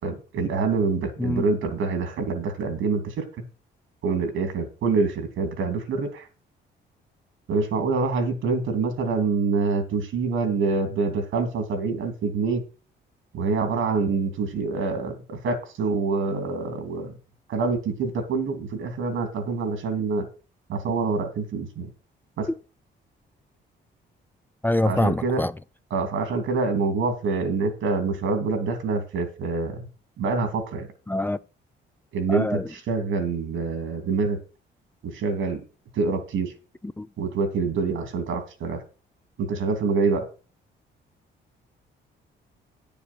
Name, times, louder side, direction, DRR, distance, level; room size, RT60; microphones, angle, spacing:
voice 1, 0.0-3.3 4.0-6.3 7.5-12.6 13.3-17.1 17.5-20.3 20.7-21.9 22.4-22.5 24.8-25.4 25.9-29.8 30.2-30.9 32.1-34.4 35.0-35.6 35.9-36.5 37.2-38.8 39.4-40.2, right 4 dB, 80° right, 2.9 m, -26 dB
voice 2, 24.6-25.5 31.1-31.4 32.3-32.6 37.0-37.1, left 1 dB, 10° left, 0.4 m, -24 dB
10.0 x 7.0 x 6.2 m
cardioid pair, 90°, 20 cm